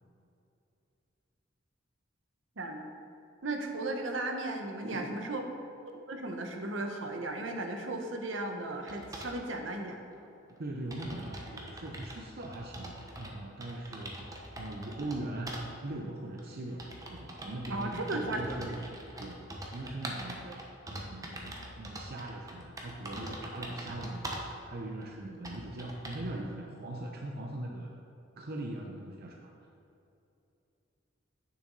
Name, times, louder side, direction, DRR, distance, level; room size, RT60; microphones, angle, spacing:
voice 1, 2.6-2.9 3.4-5.4 5.9-10.0 17.7-18.7 19.2-19.3 20.4-20.5, right 2 dB, 70° right, 3 dB, 1.0 m, -36 dB
voice 2, 4.8-5.1 10.6-12.9 13.2-14.1 14.6-18.8 19.2-19.4 19.7-20.4 20.9-27.9 28.4-29.5, right 1 dB, 55° right, 0 dB, 0.7 m, -40 dB
sound 1, 8.9-9.4 10.2-10.3 10.6-10.7 10.9-13.3 13.6-15.2 15.5-15.6 16.4-24.5 25.0-25.1 25.4-26.3, right 1 dB, 20° right, 1.0 m, -43 dB
9.2 x 6.9 x 4.0 m, 2.8 s
head